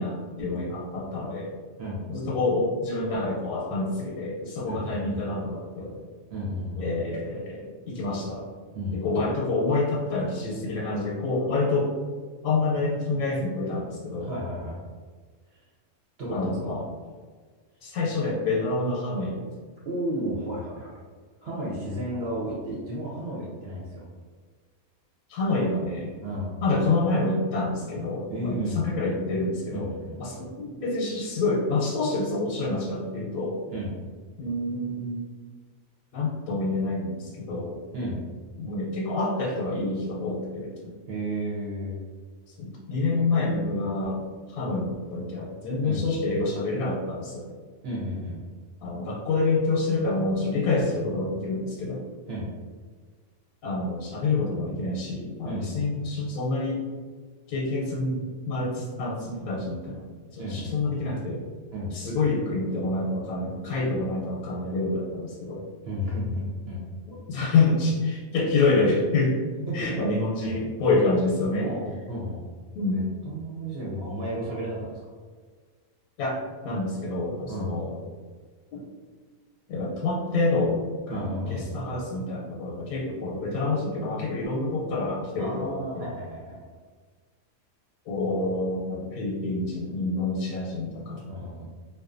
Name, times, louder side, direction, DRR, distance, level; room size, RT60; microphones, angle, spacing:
voice 1, 0.0-1.5 2.1-6.0 6.8-8.5 8.9-11.9 12.4-14.3 16.3-16.9 17.8-19.5 25.3-26.1 26.6-29.9 30.2-33.6 34.4-35.2 36.1-37.8 38.6-41.0 42.6-44.2 44.5-47.5 48.8-52.1 53.6-56.8 57.5-60.1 60.3-61.4 61.9-65.6 67.1-69.4 69.7-71.7 72.7-73.0 76.2-76.4 76.6-78.0 78.7-78.8 79.7-80.8 81.1-86.1 88.1-91.2, left 3 dB, 90° left, -4 dB, 1.1 m, -27 dB
voice 2, 4.7-5.2 6.3-6.8 8.7-9.2 14.2-14.8 15.5-15.7 16.2-16.7 19.9-20.9 21.4-24.0 26.2-26.5 28.3-28.8 29.7-30.1 33.7-33.9 37.9-38.2 41.1-42.0 45.8-46.0 47.8-48.4 52.3-52.5 55.5-55.7 60.4-60.8 61.7-61.9 65.8-66.9 69.7-69.9 70.4-70.6 71.5-72.4 72.9-75.0 77.5-77.7 81.1-81.7 85.4-86.7 91.3-91.7, equal, 60° right, -6 dB, 0.7 m, -32 dB
2.5 x 2.2 x 2.4 m, 1.5 s
omnidirectional pair, 1.5 m